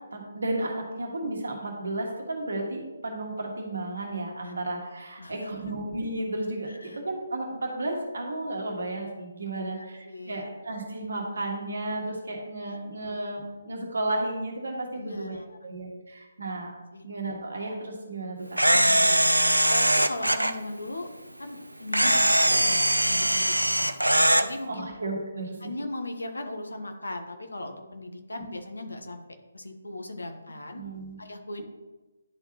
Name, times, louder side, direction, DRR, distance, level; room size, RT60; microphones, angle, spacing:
voice 1, 0.1-16.7 17.0-18.6 22.0-22.2 24.7-25.6 30.7-31.2, right 2 dB, 65° right, 1 dB, 1.4 m, -33 dB
voice 2, 5.2-5.5 6.7-7.0 9.5-10.4 12.7-12.8 15.0-15.6 16.9-17.0 18.9-21.1 21.4-23.9 24.4-24.9 25.6-29.2 29.5-30.8 31.2-31.6, left 2 dB, 70° left, 6 dB, 0.9 m, -38 dB
Camera, 18.6-20.5 21.9-24.5, right 1 dB, 85° right, 0.4 m, -21 dB
10.5 x 3.6 x 2.9 m, 1.1 s
figure-of-eight pair, 140°, 0 cm